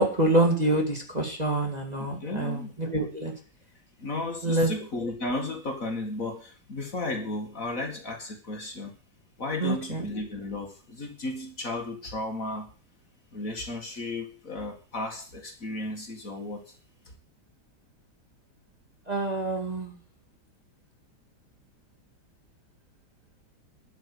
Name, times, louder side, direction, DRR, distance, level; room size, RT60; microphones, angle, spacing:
voice 1, 0.0-3.3 4.4-4.7 9.6-10.1 19.1-19.9, right 1 dB, 20° right, 1 dB, 2.4 m, -26 dB
voice 2, 2.2-2.8 4.0-9.0 9.4-12.7 13.3-16.8, left 2 dB, 45° left, 3 dB, 2.4 m, -34 dB
12.0 x 6.9 x 8.4 m, 0.38 s
omnidirectional pair, 2.1 m